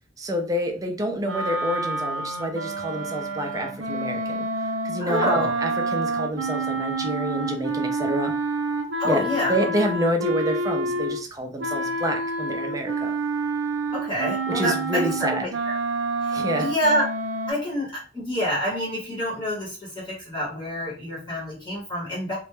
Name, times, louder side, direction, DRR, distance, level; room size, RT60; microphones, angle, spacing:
voice 1, 0.2-4.5 4.8-8.3 9.0-13.1 14.5-15.5 16.3-16.7, equal, 20° right, 3 dB, 0.4 m, -28 dB
sound 1, 1.2-11.2 11.6-17.5, right 2 dB, 85° right, 0.6 m, -28 dB
voice 2, 5.0-5.5 9.0-9.6 13.9-15.8 16.2-17.1 17.5-22.4, equal, 25° left, -6 dB, 0.8 m, -27 dB
2.2 x 2.0 x 3.0 m, 0.38 s
head